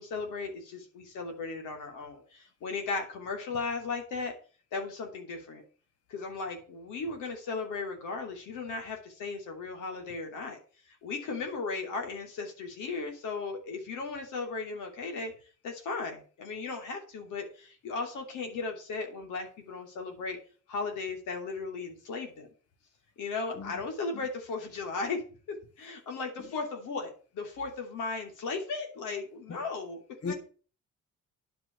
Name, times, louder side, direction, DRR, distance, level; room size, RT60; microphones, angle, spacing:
voice 1, 0.0-4.3 4.7-5.6 6.1-10.6 11.0-15.3 15.6-20.4 20.7-22.5 23.2-25.2 25.8-30.0 30.3-30.4, left 4 dB, 90° left, 3.1 m, -36 dB
voice 2, 23.5-23.8 24.1-24.3 26.4-26.6 29.5-29.6 30.2-30.3, left 4 dB, 55° left, 1.7 m, -38 dB
10.5 x 5.1 x 8.1 m
cardioid pair, 90°, 30 cm